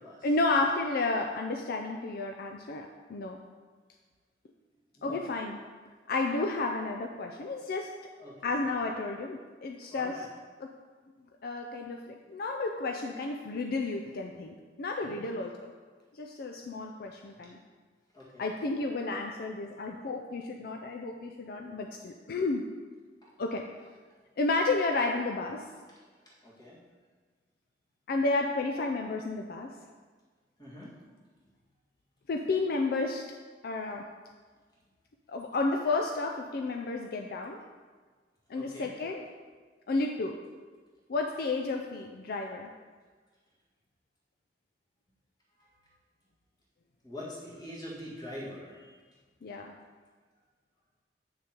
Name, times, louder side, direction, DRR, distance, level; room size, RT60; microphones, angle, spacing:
voice 1, 0.2-3.4 5.0-5.6 6.1-7.9 8.4-10.3 10.6-10.7 11.4-15.7 16.1-17.6 18.4-22.7 23.4-23.6 24.4-25.6 28.1-29.7 32.3-33.2 33.6-34.0 35.3-37.6 38.5-39.2 39.9-40.4 41.1-42.7 49.4-49.7, left 3 dB, 60° left, 3 dB, 0.4 m, -32 dB
voice 2, 9.9-10.3 15.0-15.3 18.1-18.4 23.2-23.3 26.4-26.8 30.6-30.9 38.6-38.9 47.0-48.9, left 1 dB, 25° left, -7 dB, 1.9 m, -44 dB
7.8 x 6.5 x 2.9 m, 1.4 s
head